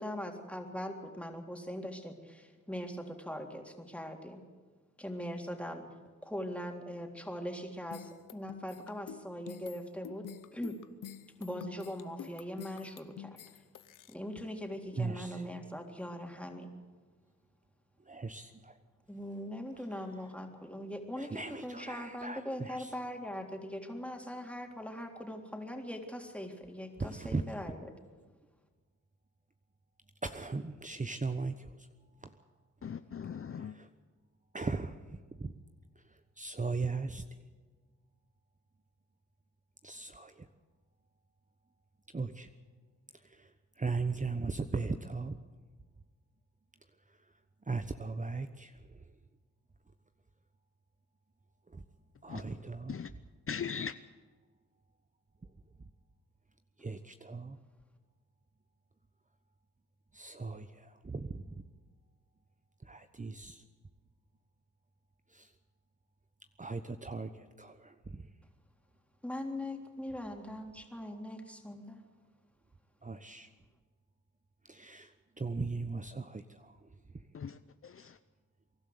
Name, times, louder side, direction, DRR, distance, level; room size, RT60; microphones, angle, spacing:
voice 1, 0.0-4.4 5.0-5.8 6.2-10.3 10.5-10.8 11.4-13.4 14.1-16.7 19.1-27.8 69.2-72.0, equal, 5° left, 3.6 m, -41 dB
sound 1, 7.9-14.1, left 9 dB, 75° left, 1.0 m, -48 dB
voice 2, 14.9-15.4 18.0-18.8 21.2-22.9 27.0-27.4 30.2-31.9 32.2-32.4 33.5-33.9 34.5-35.5 36.0-37.2 39.8-40.5 42.1-42.5 43.1-45.4 47.1-47.3 47.6-49.1 51.7-51.8 52.2-53.2 56.8-57.6 60.1-61.6 62.8-63.6 65.3-65.5 66.6-68.3 73.0-73.5 74.6-77.3, right 4 dB, 25° right, 1.0 m, -39 dB
voice 3, 32.8-33.8 52.3-52.4 52.9-53.1 53.5-53.9 77.3-77.6 77.8-78.2, left 7 dB, 45° left, 0.7 m, -39 dB
24.0 x 12.0 x 9.5 m
cardioid pair, 55°, 32 cm